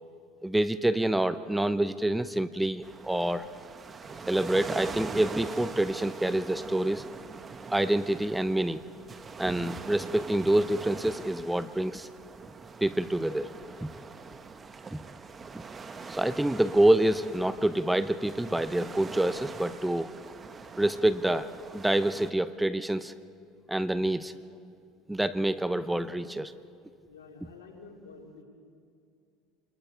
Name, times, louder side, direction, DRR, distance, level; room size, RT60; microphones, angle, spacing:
voice 1, 0.4-3.5 4.3-7.1 7.7-8.8 9.4-12.1 12.8-13.5 13.8-13.9 14.9-15.0 16.1-20.1 20.8-21.5 21.7-23.1 23.7-24.3 25.1-26.5, right 1 dB, 5° right, 13 dB, 0.7 m, -27 dB
sound 1, 2.8-22.3, right 4 dB, 30° right, 1.2 m, -43 dB
voice 2, 27.1-28.4, left 4 dB, 85° left, 0 dB, 3.5 m, -49 dB
27.5 x 21.0 x 4.6 m, 2.4 s
hypercardioid pair, 80°, 0 cm